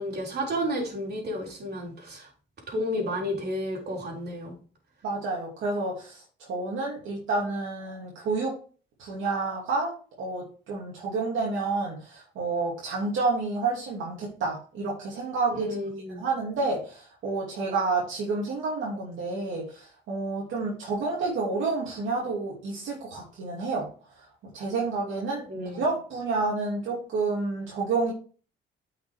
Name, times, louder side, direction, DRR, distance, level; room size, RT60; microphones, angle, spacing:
voice 1, 0.0-2.3 2.7-4.6 15.5-16.2 25.5-25.8, equal, 55° right, -1 dB, 3.7 m, -31 dB
voice 2, 5.0-8.5 9.0-15.7 16.1-23.9 24.2-24.3 24.5-28.1, right 3 dB, 80° right, -3 dB, 2.5 m, -29 dB
9.1 x 5.8 x 3.4 m, 0.39 s
cardioid pair, 90°, 20 cm